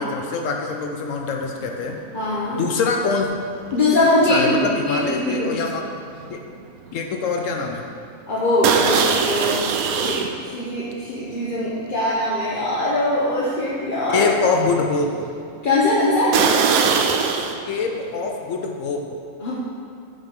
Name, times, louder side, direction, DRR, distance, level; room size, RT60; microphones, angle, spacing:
voice 1, 0.0-2.0 2.6-3.3 4.2-5.8 6.3-6.4 6.9-7.8 14.1-15.3 17.7-19.1, left 4 dB, 65° left, 3 dB, 0.9 m, -24 dB
sound 1, 1.4-1.7 2.0-6.6 6.9-7.2 7.6-7.7 8.6-10.3 10.9-11.0 11.6-11.7 12.2-12.3 16.3-17.6, right 6 dB, 75° right, 1.0 m, -22 dB
voice 2, 2.1-2.6 3.7-5.6 8.3-14.3 15.6-16.4 19.4-19.5, left 1 dB, 40° left, -8 dB, 1.0 m, -21 dB
5.4 x 4.9 x 5.3 m, 2.3 s
omnidirectional pair, 1.6 m